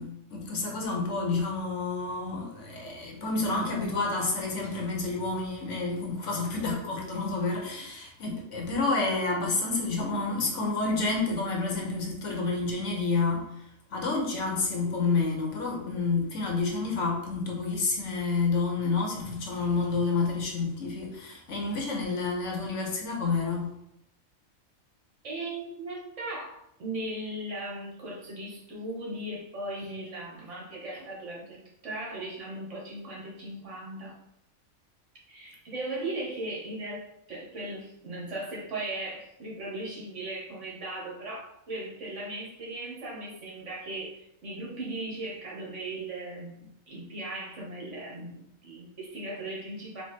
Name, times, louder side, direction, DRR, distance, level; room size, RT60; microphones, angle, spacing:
voice 1, 0.0-13.5 13.9-23.7, left 3 dB, 65° left, 0 dB, 1.2 m, -29 dB
voice 2, 18.8-19.2 25.2-34.2 35.3-50.0, right 2 dB, 60° right, -4 dB, 1.6 m, -38 dB
4.5 x 2.6 x 4.3 m, 0.79 s
omnidirectional pair, 1.4 m